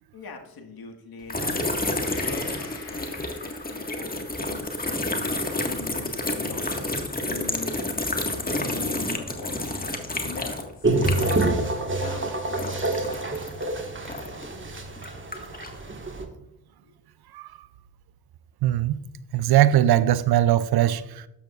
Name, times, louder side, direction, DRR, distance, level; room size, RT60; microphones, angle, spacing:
voice 1, 0.1-11.6 11.9-12.7 16.8-17.0, left 4 dB, 50° left, 1.8 m, -42 dB
sound 1, 1.3-11.7 11.9-14.5 15.0-15.8, left 2 dB, 20° left, 1.8 m, -30 dB
Gong, 2.0-9.7 10.0-10.1, left 4 dB, 80° left, 3.5 m, -49 dB
sound 2, 10.8-16.2, right 2 dB, 25° right, 1.8 m, -27 dB
voice 2, 18.6-19.0 19.3-21.3, right 12 dB, 55° right, 0.5 m, -20 dB
12.5 x 8.3 x 2.5 m
hypercardioid pair, 45°, 48 cm